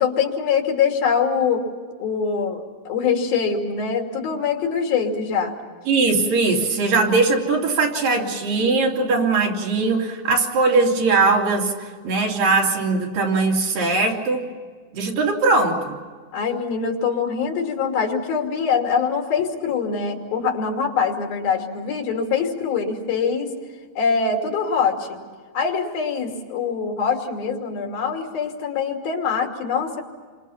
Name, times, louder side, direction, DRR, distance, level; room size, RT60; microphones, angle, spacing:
voice 1, 0.0-1.6 2.0-5.6 16.3-23.5 24.0-25.2 25.5-30.0, left 6 dB, 80° left, 2 dB, 4.7 m, -23 dB
voice 2, 5.9-11.7 12.0-14.4 14.9-16.0, right 3 dB, 70° right, -1 dB, 4.9 m, -20 dB
29.5 x 25.0 x 5.8 m, 1.6 s
omnidirectional pair, 4.2 m